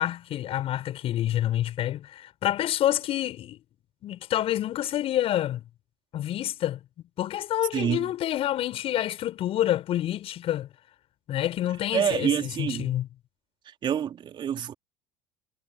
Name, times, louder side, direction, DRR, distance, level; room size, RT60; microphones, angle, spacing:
voice 1, 0.0-3.6 4.0-5.7 6.1-6.8 7.2-10.7 11.3-13.1, left 12 dB, 50° left, 7.0 m, -28 dB
voice 2, 7.7-8.1 11.9-12.9 13.7-14.7, right 9 dB, 40° right, 3.5 m, -27 dB
hypercardioid pair, 85°, 12 cm